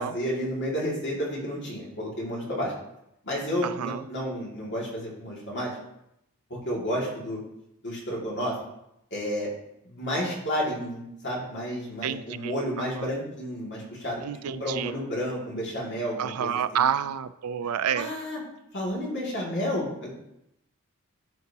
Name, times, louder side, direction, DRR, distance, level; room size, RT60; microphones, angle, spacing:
voice 1, 0.0-2.7 3.2-5.8 6.6-7.4 7.8-8.6 9.1-9.5 9.8-16.8 17.9-18.4 18.7-20.1, equal, 50° left, -4 dB, 2.4 m, -31 dB
voice 2, 3.6-4.0 12.0-12.5 14.2-14.9 16.2-18.1, right 8 dB, 85° right, 14 dB, 0.4 m, -28 dB
13.0 x 4.6 x 2.9 m, 0.82 s
head